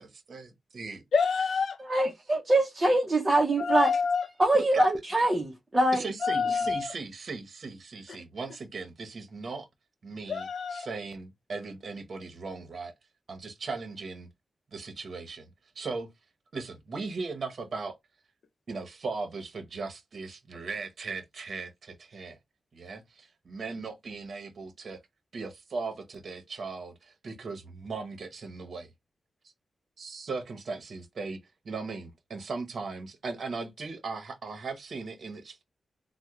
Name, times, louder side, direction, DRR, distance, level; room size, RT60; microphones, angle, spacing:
voice 1, 0.3-1.0 4.7-4.8 5.9-9.7 10.0-12.9 13.3-14.3 14.7-15.5 15.8-16.1 16.5-17.9 18.7-22.4 22.7-25.0 25.3-28.9 30.0-35.6, right 4 dB, 55° right, 0.7 m, -38 dB
voice 2, 1.1-1.8 3.6-4.3 6.2-6.9 10.3-10.9, left 5 dB, 65° left, 0.6 m, -27 dB
voice 3, 1.8-3.9 4.4-6.0, right 1 dB, 20° right, 0.6 m, -24 dB
3.4 x 2.0 x 2.9 m
wide cardioid pair, 140°, 0 cm